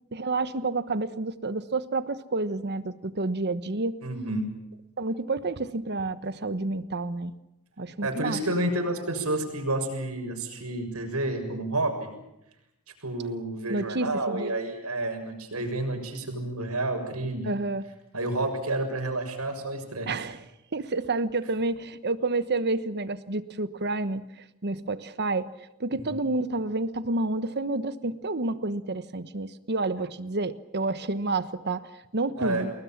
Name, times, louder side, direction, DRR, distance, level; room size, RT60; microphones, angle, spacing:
voice 1, 0.1-3.9 5.0-7.3 7.8-8.4 13.7-14.5 17.4-17.8 20.1-20.4 20.7-25.5 25.8-32.7, right 2 dB, 50° right, 13 dB, 1.2 m, -29 dB
voice 2, 4.0-4.5 8.0-12.1 13.0-17.5 18.1-20.1 25.9-26.2 32.4-32.7, right 2 dB, 85° right, 5 dB, 6.8 m, -30 dB
30.0 x 20.5 x 7.3 m, 0.88 s
head